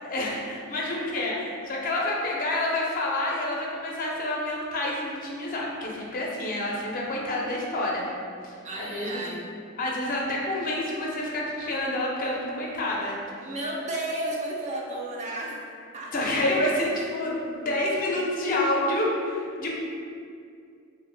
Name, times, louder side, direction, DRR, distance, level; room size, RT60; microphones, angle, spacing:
voice 1, 0.0-8.0 8.4-9.2 9.8-13.2 16.1-19.8, left 1 dB, 45° left, -3 dB, 0.4 m, -28 dB
voice 2, 8.6-9.4 13.4-15.6 15.9-16.1, right 1 dB, 35° right, -2 dB, 0.3 m, -32 dB
2.4 x 2.0 x 3.3 m, 2.3 s
head